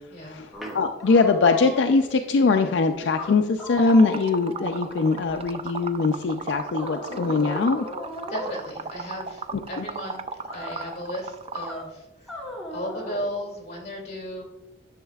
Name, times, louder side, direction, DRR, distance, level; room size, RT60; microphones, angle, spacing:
voice 1, 0.2-7.9 9.8-9.9, left 4 dB, 70° left, 6 dB, 0.4 m, -22 dB
sound 1, 0.5-2.0 2.6-2.7 3.1-5.6 6.8-8.6 10.5-11.0 11.5-11.9 12.3-13.2, left 1 dB, ahead, 1.3 m, -37 dB
Liquid, 3.8-11.8, right 5 dB, 30° right, 0.3 m, -36 dB
voice 2, 8.3-10.3 10.5-14.4, equal, 40° left, -1 dB, 2.4 m, -35 dB
10.0 x 6.3 x 2.3 m, 1.0 s
head